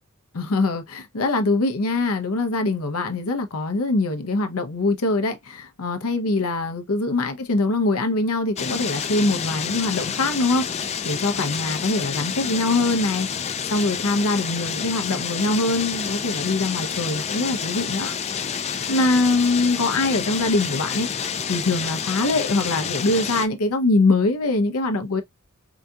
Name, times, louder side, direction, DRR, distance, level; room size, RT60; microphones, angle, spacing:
voice 1, 0.3-25.2, left 2 dB, 75° left, 0.7 m, -23 dB
sound 1, 8.6-23.5, left 7 dB, 30° left, 0.4 m, -29 dB
4.8 x 2.7 x 2.3 m
head